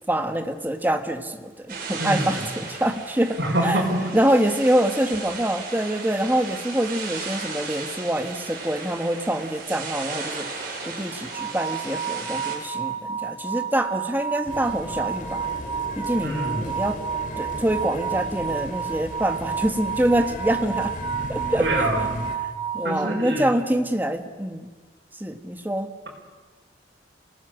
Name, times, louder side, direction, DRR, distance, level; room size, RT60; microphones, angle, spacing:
voice 1, 0.1-3.8 4.1-10.5 10.8-15.5 15.9-17.0 17.4-21.0 21.3-21.9 22.7-24.7 25.2-25.9, right 1 dB, 10° right, 6 dB, 1.4 m, -25 dB
sound 1, 1.7-12.6, right 4 dB, 55° right, 5.3 m, -35 dB
voice 2, 2.0-2.3 3.4-4.0 16.2-16.8 21.6-22.2 22.8-23.5, right 1 dB, 75° right, -1 dB, 4.9 m, -25 dB
sound 2, 11.3-23.5, right 7 dB, 30° right, 0.7 m, -31 dB
sound 3, 14.4-22.4, left 1 dB, 50° left, 2.3 m, -37 dB
27.5 x 19.0 x 6.5 m, 1.4 s
head